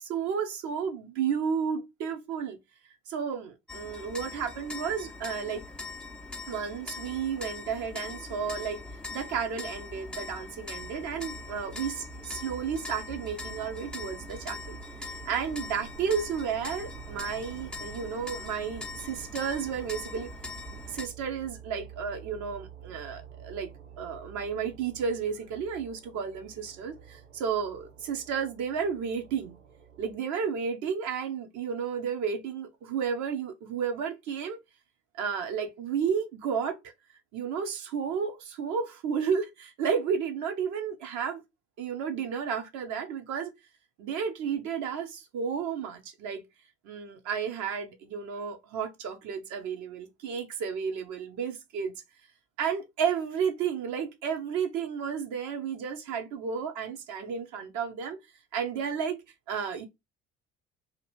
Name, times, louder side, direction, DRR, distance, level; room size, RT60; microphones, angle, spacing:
voice 1, 0.0-2.6 3.1-5.6 6.5-8.8 9.1-20.3 20.7-23.7 24.0-29.6 30.0-34.6 35.2-36.8 37.3-41.4 41.8-43.5 44.0-46.4 46.8-51.9 52.6-58.2 58.5-59.2 59.5-59.9, right 7 dB, 50° right, 0.8 m, -32 dB
sound 1, 3.7-21.1, left 3 dB, 5° left, 0.3 m, -42 dB
sound 2, 10.8-30.2, right 9 dB, 85° right, 0.5 m, -49 dB
2.8 x 2.4 x 3.0 m
figure-of-eight pair, 55°, 37 cm